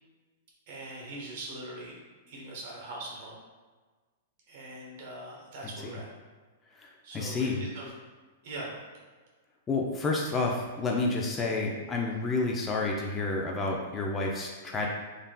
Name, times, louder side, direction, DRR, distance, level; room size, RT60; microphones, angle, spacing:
voice 1, 0.7-2.0 2.3-3.4 4.5-6.1 7.0-7.9 8.4-8.7, right 2 dB, 55° right, -2 dB, 1.0 m, -41 dB
voice 2, 5.6-6.0 6.7-7.7 9.7-14.9, left 3 dB, 20° left, -1 dB, 0.4 m, -30 dB
3.3 x 2.5 x 2.3 m, 1.4 s
hypercardioid pair, 125°, 0 cm